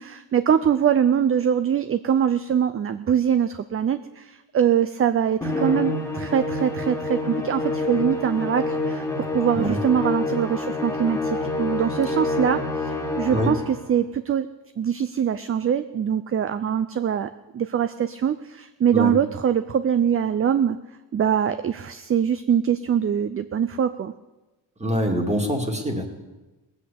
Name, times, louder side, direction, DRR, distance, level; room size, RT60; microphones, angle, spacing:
voice 1, 0.0-9.0 9.3-14.5 14.8-17.3 17.5-20.8 21.1-24.1, right 8 dB, 30° right, 12 dB, 0.4 m, -23 dB
Musical instrument, 5.4-13.9, left 2 dB, 5° left, 2.0 m, -27 dB
voice 2, 24.8-26.1, equal, 15° right, 3 dB, 2.1 m, -24 dB
19.0 x 8.0 x 8.4 m, 1.1 s
cardioid pair, 145°, 46 cm